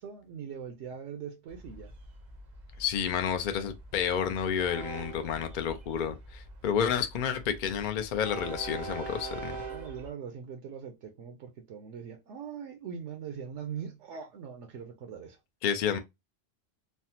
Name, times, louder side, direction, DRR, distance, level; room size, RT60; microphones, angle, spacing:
voice 1, 0.0-1.9 9.6-15.4, right 7 dB, 75° right, 0.9 m, -41 dB
Train, 1.5-10.1, right 3 dB, 50° right, 0.6 m, -43 dB
voice 2, 2.8-9.6 15.6-16.0, left 8 dB, 60° left, 0.5 m, -30 dB
3.2 x 2.0 x 2.7 m
omnidirectional pair, 1.2 m